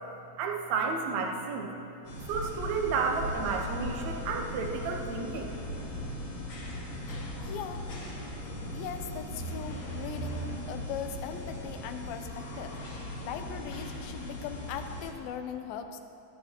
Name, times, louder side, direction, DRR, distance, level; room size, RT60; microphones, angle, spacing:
voice 1, 0.4-1.7 2.3-5.5, right 5 dB, 65° right, 2 dB, 2.0 m, -31 dB
sound 1, 2.0-15.1, left 1 dB, 50° left, 2.7 m, -38 dB
voice 2, 7.4-7.9 8.7-12.8 13.2-16.0, left 8 dB, 85° left, 7 dB, 2.5 m, -39 dB
17.5 x 12.5 x 2.9 m, 2.7 s
omnidirectional pair, 4.1 m